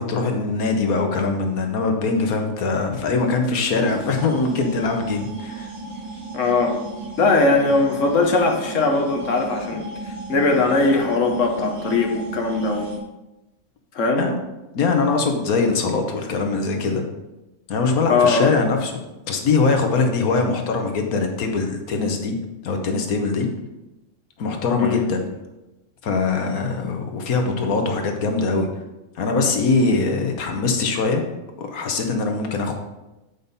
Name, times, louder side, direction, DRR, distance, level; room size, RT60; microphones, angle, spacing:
voice 1, 0.0-5.7 14.2-14.4 14.7-17.0 17.7-22.4 22.6-23.5 24.4-25.2 26.0-28.7 29.1-31.3 31.6-32.7, left 4 dB, 90° left, 4 dB, 1.5 m, -22 dB
sound 1, 3.7-13.0, right 3 dB, 80° right, 2.6 m, -35 dB
voice 2, 6.3-6.8 7.2-12.9 13.9-14.3 18.1-18.5 24.8-25.0, left 3 dB, 65° left, 4 dB, 1.3 m, -20 dB
8.5 x 5.3 x 4.1 m, 1.0 s
omnidirectional pair, 1.5 m